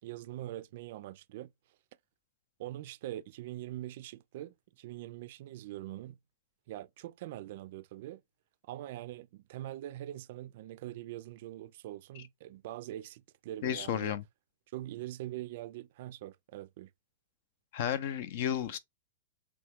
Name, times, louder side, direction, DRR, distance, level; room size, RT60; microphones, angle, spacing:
voice 1, 0.0-1.5 2.6-6.2 6.7-8.2 8.6-14.2 14.7-16.9, right 14 dB, 60° right, 0.3 m, -43 dB
voice 2, 13.6-14.2 17.7-18.8, left 10 dB, 60° left, 0.5 m, -33 dB
3.0 x 2.4 x 3.4 m
hypercardioid pair, 135°, 0 cm